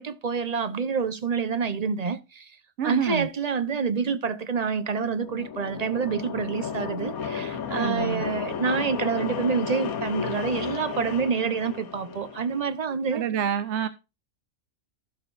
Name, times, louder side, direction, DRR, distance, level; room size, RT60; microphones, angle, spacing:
voice 1, 0.0-2.6 2.8-13.2, right 5 dB, 30° right, 0.9 m, -27 dB
voice 2, 2.8-3.3 7.7-8.2 13.1-13.9, right 8 dB, 60° right, 0.9 m, -27 dB
sound 1, 4.8-12.7, left 7 dB, 90° left, 1.5 m, -33 dB
16.0 x 6.7 x 2.5 m
omnidirectional pair, 1.5 m